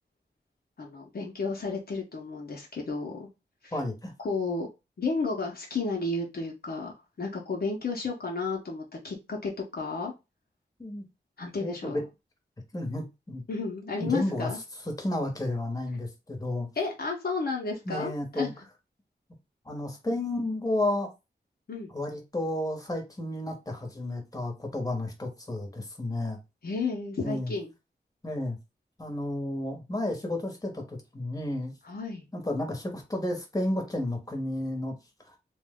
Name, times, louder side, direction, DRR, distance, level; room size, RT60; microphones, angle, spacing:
voice 1, 0.8-3.3 3.6-3.7 4.2-4.7 5.0-6.9 7.2-10.1 11.4-12.0 13.5-14.6 16.8-18.5 21.7-21.9 26.6-27.7 31.8-32.3, left 3 dB, 60° left, 0.7 m, -32 dB
voice 2, 3.7-4.1 10.8-11.0 11.6-12.0 12.7-13.4 14.0-16.7 17.8-18.5 19.6-21.1 21.9-26.4 27.2-27.5 28.2-28.6 29.0-31.7 32.3-34.9 35.3-35.4, left 1 dB, 20° left, 0.9 m, -32 dB
2.9 x 2.1 x 3.5 m
wide cardioid pair, 90°, 18 cm